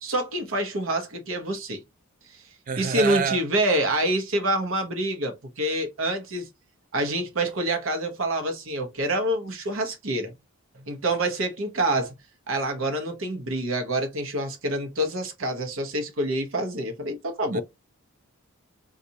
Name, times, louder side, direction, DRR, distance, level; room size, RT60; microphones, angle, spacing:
voice 1, 0.0-1.8 2.8-6.5 6.9-10.3 10.9-12.1 12.5-17.6, right 1 dB, 65° right, 0.9 m, -27 dB
voice 2, 2.7-3.4 17.5-17.6, right 6 dB, 40° right, 0.3 m, -27 dB
3.9 x 2.5 x 2.7 m
head